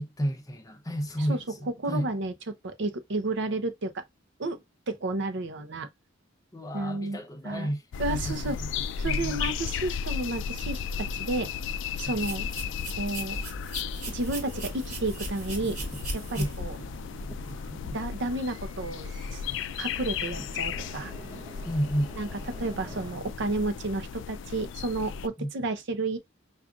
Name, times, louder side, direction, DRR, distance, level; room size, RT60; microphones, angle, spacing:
voice 1, 0.0-2.1 6.5-7.8 8.1-8.7 9.0-9.4 12.1-12.2 16.3-16.5 21.7-22.2 25.4-25.5, equal, 20° left, 0.6 m, -31 dB
voice 2, 1.8-4.0 4.4-4.6 4.9-5.9 6.7-7.2 7.4-7.7 8.0-8.6 9.0-11.5 12.0-12.5 12.9-13.4 14.1-15.8 16.1-16.8 17.9-19.4 19.8-21.1 22.2-26.2, right 2 dB, 65° right, 0.6 m, -32 dB
sound 1, 7.9-25.3, left 6 dB, 65° left, 0.3 m, -35 dB
sound 2, 12.1-17.2, right 1 dB, 40° right, 1.4 m, -39 dB
sound 3, 15.6-23.1, right 2 dB, 20° right, 0.8 m, -46 dB
5.1 x 2.5 x 2.3 m
head